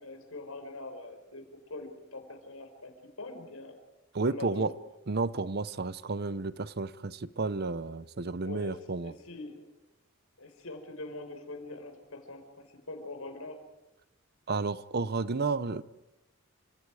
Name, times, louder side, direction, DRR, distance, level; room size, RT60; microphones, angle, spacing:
voice 1, 0.0-1.4 1.7-2.9 3.2-3.7 4.2-4.7 8.4-9.7 10.4-13.6, left 2 dB, 85° left, 6 dB, 5.0 m, -43 dB
voice 2, 4.1-4.7 5.1-9.1 14.5-15.8, right 3 dB, 50° right, 16 dB, 0.7 m, -31 dB
30.0 x 26.0 x 4.9 m, 0.94 s
head